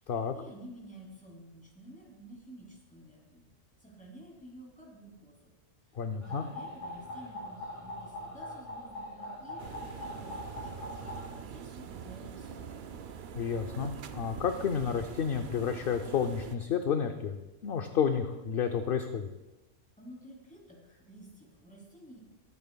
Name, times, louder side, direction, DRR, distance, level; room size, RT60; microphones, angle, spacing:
voice 1, 0.0-3.5 3.8-5.3 6.2-10.9 11.1-12.8 20.0-22.2, right 1 dB, 5° left, -3 dB, 2.9 m, -51 dB
voice 2, 5.9-6.5 13.3-19.3, left 7 dB, 55° left, 6 dB, 0.7 m, -31 dB
sound 1, 6.2-11.3, left 1 dB, 25° left, 1.9 m, -42 dB
sound 2, 9.6-16.6, right 7 dB, 55° right, 0.6 m, -44 dB
22.0 x 8.1 x 2.3 m, 1.1 s
omnidirectional pair, 1.3 m